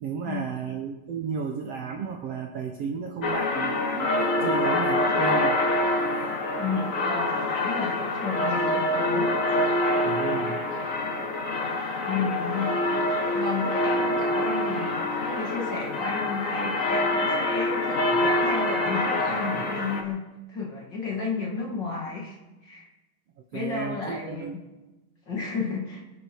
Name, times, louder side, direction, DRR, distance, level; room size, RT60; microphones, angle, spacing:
voice 1, 0.0-4.1 4.4-5.6 10.0-10.6 23.5-24.6, right 6 dB, 65° right, 2 dB, 1.6 m, -33 dB
sound 1, 3.2-20.0, left 1 dB, 80° left, 0.7 m, -26 dB
voice 2, 6.6-9.7 12.1-12.8 13.3-20.2 20.5-22.9 23.5-24.6 25.3-26.0, left 4 dB, 40° left, -1 dB, 2.3 m, -32 dB
23.5 x 10.5 x 4.6 m, 1.1 s
omnidirectional pair, 3.8 m